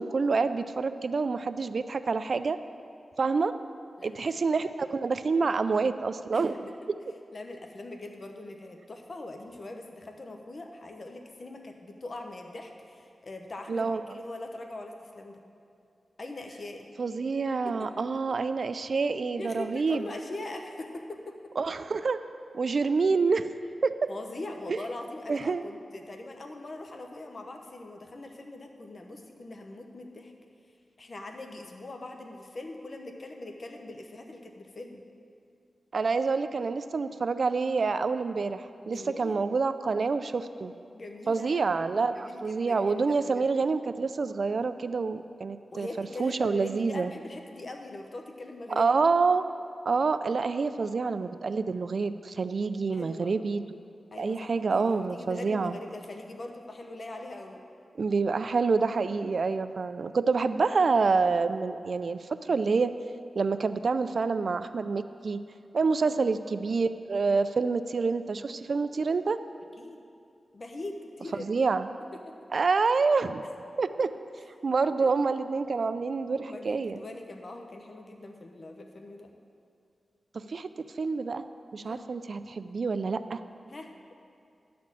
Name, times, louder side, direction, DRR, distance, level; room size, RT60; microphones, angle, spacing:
voice 1, 0.0-2.6 3.2-3.5 4.0-6.7 13.7-14.0 17.0-20.0 21.6-22.2 22.5-23.5 23.8-24.1 24.7-24.8 25.3-25.6 35.9-40.7 41.3-47.1 48.8-49.5 49.9-53.6 54.2-55.7 58.0-62.9 63.4-65.4 65.7-69.4 71.4-71.9 72.5-73.4 73.8-74.1 74.6-77.0 80.5-80.7 81.0-81.4 81.7-83.4, right 4 dB, 65° right, 12 dB, 0.3 m, -27 dB
voice 2, 4.0-4.4 6.3-6.4 7.3-15.4 16.2-16.9 17.6-18.4 19.4-21.3 24.1-30.3 31.0-35.0 38.8-39.4 40.9-41.7 42.1-43.5 45.7-48.9 52.9-53.3 54.1-57.6 66.0-66.3 69.8-70.0 70.5-71.5 72.1-72.3 75.0-75.1 76.3-79.3 81.8-82.1 83.7-84.1, left 2 dB, 50° left, 4 dB, 0.9 m, -42 dB
10.5 x 4.3 x 7.3 m, 2.5 s
wide cardioid pair, 70°, 0 cm